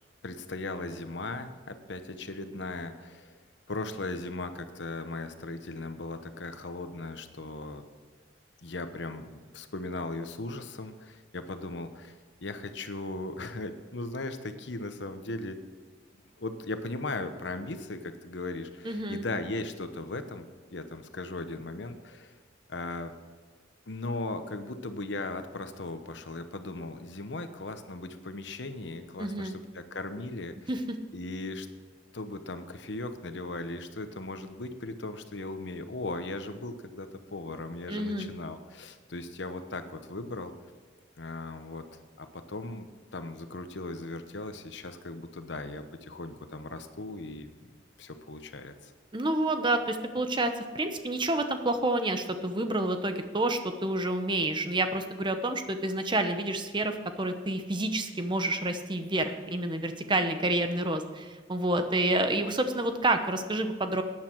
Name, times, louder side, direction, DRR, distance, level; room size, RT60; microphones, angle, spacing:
voice 1, 0.2-3.4 3.7-7.8 8.6-12.2 12.4-15.6 16.4-20.5 20.7-22.4 22.7-23.1 23.9-30.7 31.1-31.7 32.1-40.5 41.2-41.9 42.2-47.5 48.0-48.9, left 2 dB, 65° left, 9 dB, 1.0 m, -38 dB
voice 2, 18.8-19.2 29.2-29.6 30.7-30.8 37.9-38.3 49.1-64.0, right 2 dB, 25° right, 7 dB, 0.9 m, -29 dB
13.5 x 9.6 x 4.6 m, 1.5 s
head